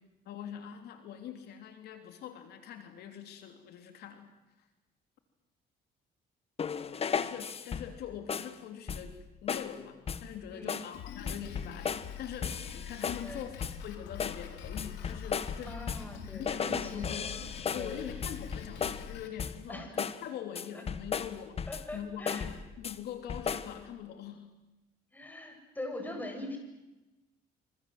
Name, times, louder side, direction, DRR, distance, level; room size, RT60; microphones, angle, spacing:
voice 1, 0.2-4.3 4.6-4.7 6.8-15.8 16.3-17.4 17.7-24.5, left 9 dB, 70° left, 6 dB, 3.2 m, -43 dB
sound 1, 6.6-8.0 8.3-8.6 8.9-9.2 9.5-9.8 10.1-10.3 10.7-11.0 11.3-12.1 12.4-13.3 13.6-13.9 14.2-16.2 16.5-19.1 19.4-19.7 20.0-20.2 20.5-21.9 22.3-23.0 23.3-23.8, left 6 dB, 35° left, 1.5 m, -36 dB
Drum kit, 10.9-19.3, left 8 dB, 90° left, 3.9 m, -45 dB
voice 2, 15.7-17.1 17.8-18.1 19.7-19.9 21.7-22.5 25.1-26.6, left 1 dB, 10° left, 4 dB, 7.8 m, -42 dB
27.5 x 26.5 x 7.9 m, 1.0 s
cardioid pair, 110°, 17 cm